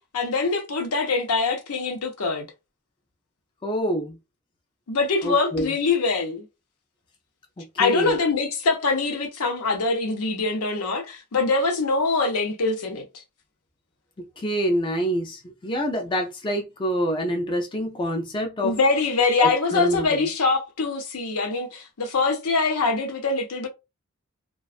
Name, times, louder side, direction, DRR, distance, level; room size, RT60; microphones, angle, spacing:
voice 1, 0.1-2.5 4.9-6.5 7.8-13.0 18.6-23.7, left 3 dB, 80° left, 0.7 m, -23 dB
voice 2, 3.6-4.2 5.2-5.7 7.6-8.1 14.2-18.8 19.4-20.3, equal, 20° left, 0.3 m, -26 dB
2.4 x 2.2 x 2.4 m
head